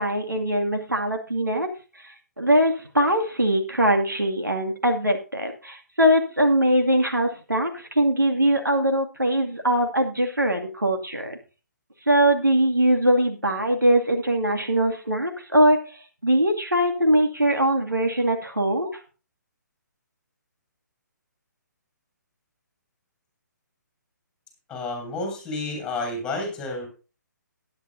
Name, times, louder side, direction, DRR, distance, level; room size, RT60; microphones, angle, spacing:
voice 1, 0.0-1.7 2.0-11.4 12.1-18.9, right 1 dB, 85° right, 3 dB, 2.3 m, -22 dB
voice 2, 24.7-26.9, left 2 dB, 10° left, 2 dB, 7.2 m, -30 dB
18.5 x 10.5 x 2.7 m, 0.34 s
figure-of-eight pair, 135°, 10 cm